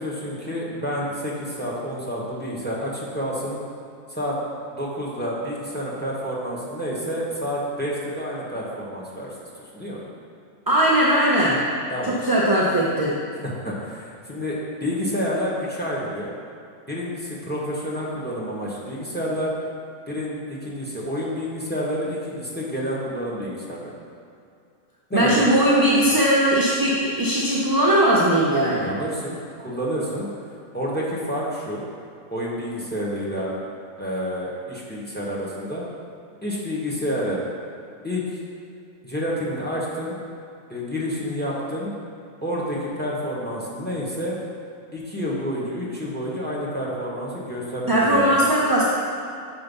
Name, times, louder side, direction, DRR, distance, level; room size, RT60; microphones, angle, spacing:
voice 1, 0.0-3.6 4.1-4.4 4.7-9.3 9.7-10.0 11.9-12.2 13.4-16.3 16.9-19.5 20.1-23.9 25.1-25.5 28.7-30.3 30.7-31.8 32.3-33.5 34.0-35.8 36.4-37.4 38.0-38.2 39.0-40.2 40.7-41.9 42.4-44.4 44.9-48.3, equal, 10° left, -5 dB, 0.9 m, -29 dB
voice 2, 10.7-11.6 12.0-13.1 25.1-28.9 47.9-48.8, right 1 dB, 25° right, -6 dB, 0.5 m, -19 dB
5.6 x 4.3 x 5.4 m, 2.5 s
omnidirectional pair, 1.4 m